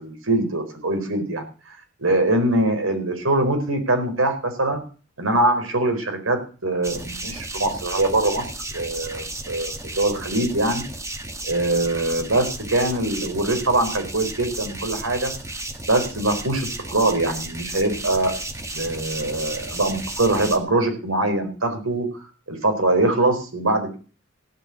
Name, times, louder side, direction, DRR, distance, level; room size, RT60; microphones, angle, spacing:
voice 1, 0.0-4.8 5.2-10.9 11.4-15.3 15.9-18.3 18.7-24.0, right 2 dB, 80° right, 5 dB, 4.4 m, -23 dB
sound 1, 6.8-20.6, right 2 dB, 15° right, 1.6 m, -33 dB
16.5 x 6.4 x 8.4 m, 0.37 s
head